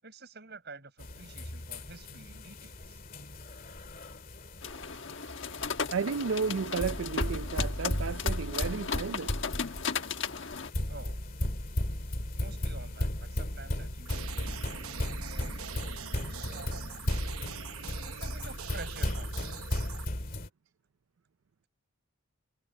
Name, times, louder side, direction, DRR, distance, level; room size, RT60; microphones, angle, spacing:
voice 1, 0.0-3.0 10.9-11.2 12.3-17.0 18.0-19.6, right 3 dB, 50° right, 7.8 m, -49 dB
sound 1, 1.0-20.5, left 1 dB, 40° left, 2.3 m, -36 dB
sound 2, 4.6-10.7, left 6 dB, 60° left, 1.3 m, -36 dB
voice 2, 5.9-9.3, right 5 dB, 70° right, 0.5 m, -33 dB
sound 3, 14.0-20.1, right 7 dB, 85° right, 0.9 m, -43 dB
head